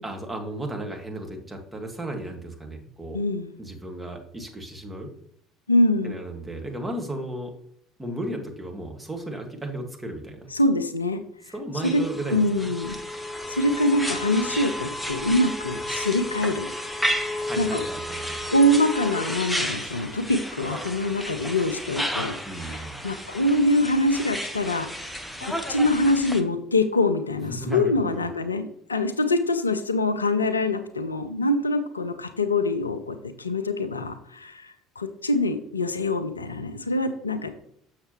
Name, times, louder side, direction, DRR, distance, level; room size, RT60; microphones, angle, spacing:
voice 1, 0.0-3.2 3.6-5.1 6.0-7.5 8.0-10.5 11.5-12.4 17.3-18.4 22.4-22.9 27.4-28.2, right 1 dB, 15° right, 3 dB, 1.6 m, -34 dB
voice 2, 3.1-3.5 5.7-6.2 10.5-11.2 11.9-12.0 12.3-13.0 13.5-16.7 17.6-17.8 18.5-22.7 23.0-24.9 25.4-37.5, left 1 dB, 85° left, 9 dB, 0.5 m, -24 dB
sound 1, 11.8-26.4, equal, 5° left, 0.9 m, -32 dB
6.6 x 6.6 x 3.0 m, 0.67 s
figure-of-eight pair, 60°, 0 cm